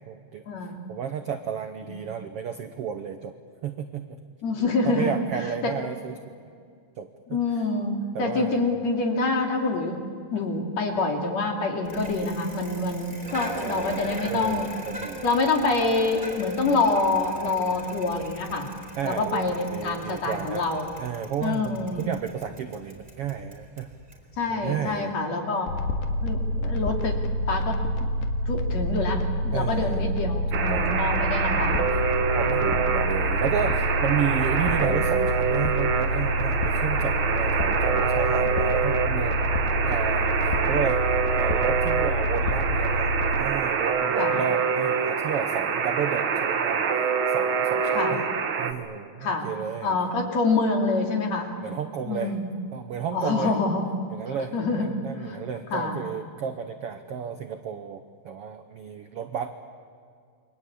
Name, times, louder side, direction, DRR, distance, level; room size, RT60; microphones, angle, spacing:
voice 1, 0.0-3.3 3.6-4.2 4.8-6.3 7.0-7.4 8.1-8.8 13.5-15.2 19.0-20.7 21.0-23.9 24.5-25.1 29.5-30.2 30.5-31.5 32.2-41.0 41.3-46.8 47.3-48.3 48.6-50.0 51.6-52.4 52.7-53.6 54.1-59.7, right 8 dB, 70° right, 7 dB, 1.4 m, -32 dB
voice 2, 4.4-5.7 7.3-10.0 10.3-14.7 15.2-18.7 19.0-20.9 21.4-22.1 24.4-25.7 26.2-27.2 27.5-28.1 28.5-31.8 32.4-32.6 34.8-35.0 44.2-44.3 48.0-48.1 49.2-49.5 49.8-51.5 52.1-52.5 53.1-53.8 54.5-54.9 55.1-55.4 55.7-56.0, left 3 dB, 50° left, 2 dB, 3.8 m, -26 dB
Bicycle, 11.8-25.0, right 1 dB, 15° right, 4.0 m, -41 dB
sound 1, 25.7-43.4, equal, 85° left, 3.6 m, -27 dB
Alarm, 30.5-48.7, right 6 dB, 50° right, 1.6 m, -26 dB
29.5 x 23.5 x 8.6 m, 2.3 s
omnidirectional pair, 4.1 m